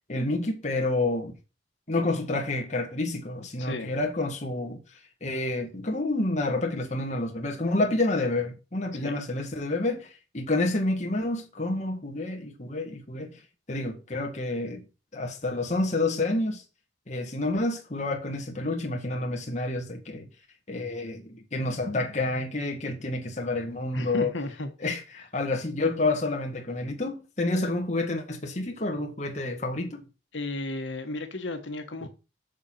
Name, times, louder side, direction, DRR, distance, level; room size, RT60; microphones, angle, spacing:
voice 1, 0.1-1.3 1.9-4.8 5.2-13.4 13.7-14.8 15.1-16.6 17.1-20.3 20.7-24.3 24.8-30.0 32.0-32.1, left 2 dB, 40° left, 1.8 m, -29 dB
voice 2, 3.6-3.9 8.9-9.2 23.9-24.7 30.3-32.1, left 2 dB, 85° left, 1.5 m, -34 dB
7.2 x 6.6 x 5.7 m
head